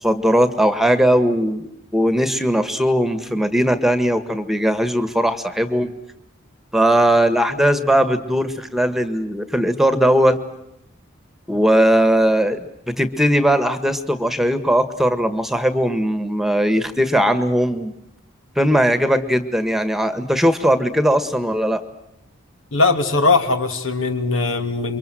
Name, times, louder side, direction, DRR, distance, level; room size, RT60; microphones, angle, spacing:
voice 1, 0.0-1.7 1.9-5.9 6.7-10.4 11.5-17.9 18.5-21.8, equal, ahead, 10 dB, 1.6 m, -18 dB
voice 2, 22.7-25.0, left 3 dB, 75° left, 6 dB, 3.0 m, -19 dB
29.5 x 24.0 x 7.8 m, 0.84 s
head